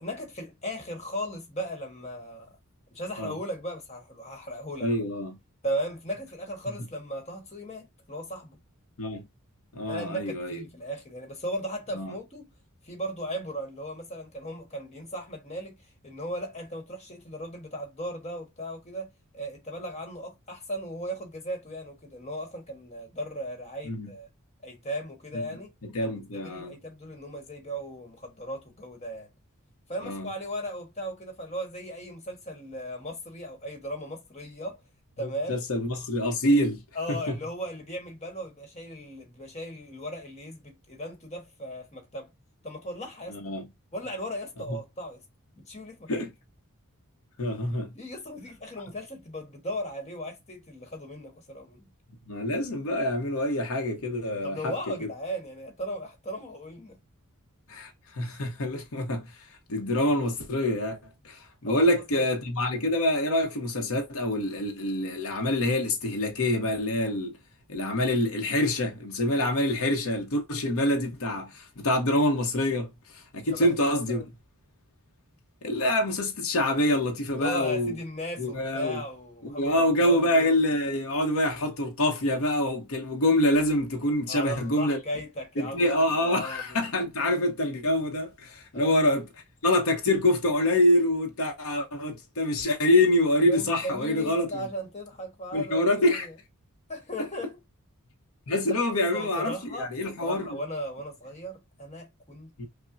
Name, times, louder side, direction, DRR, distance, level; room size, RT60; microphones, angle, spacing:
voice 1, 0.0-2.5 2.9-4.9 5.6-8.6 9.8-12.4 12.8-15.7 16.0-24.3 24.6-25.7 26.0-29.3 29.9-34.8 35.2-35.6 36.9-42.3 42.6-43.4 43.9-45.2 45.7-46.1 47.9-51.9 54.4-57.0 61.7-62.3 73.5-74.3 77.4-80.5 84.3-86.8 88.7-89.0 93.5-96.3 96.9-97.6 99.1-99.9 100.2-102.5, equal, 30° left, 1.2 m, -37 dB
voice 2, 4.8-5.4 9.0-9.3 9.7-10.6 11.9-12.1 23.8-24.1 25.8-26.8 30.0-30.3 35.2-36.8 37.1-37.4 43.3-43.7 44.7-44.8 46.1-46.3 47.4-47.9 52.3-55.1 57.7-61.0 61.2-67.4 67.7-74.2 75.6-77.9 78.4-79.0 79.4-85.0 85.6-89.3 89.6-94.7 95.5-96.3 97.2-97.3 98.5-100.6 102.6-102.7, left 1 dB, 70° left, 0.8 m, -26 dB
5.5 x 2.1 x 2.5 m
head